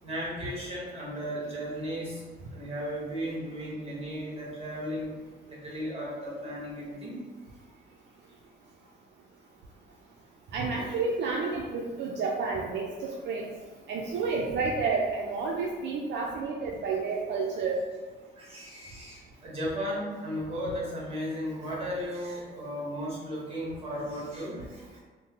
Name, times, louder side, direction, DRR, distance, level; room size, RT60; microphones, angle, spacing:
voice 1, 0.0-2.2 2.5-5.1 5.5-7.2 18.4-25.0, equal, 30° right, -5 dB, 1.2 m, -35 dB
voice 2, 10.5-13.5 13.9-17.8, right 4 dB, 65° right, -2 dB, 0.4 m, -30 dB
3.0 x 2.1 x 2.9 m, 1.4 s
cardioid pair, 90°, 20 cm